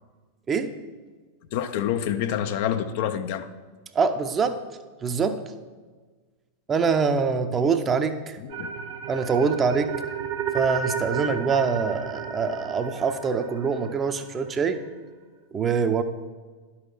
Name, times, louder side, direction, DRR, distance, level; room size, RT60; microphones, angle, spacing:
voice 1, 1.5-3.5 8.4-8.7, left 9 dB, 50° left, 10 dB, 0.5 m, -27 dB
voice 2, 3.9-4.6 5.0-5.4 6.7-8.4 9.1-9.9 10.5-14.8 15.5-16.0, right 5 dB, 20° right, 9 dB, 0.7 m, -24 dB
sound 1, 8.5-14.6, right 7 dB, 45° right, 0.9 m, -33 dB
11.0 x 5.7 x 6.3 m, 1.4 s
figure-of-eight pair, 90°, 0 cm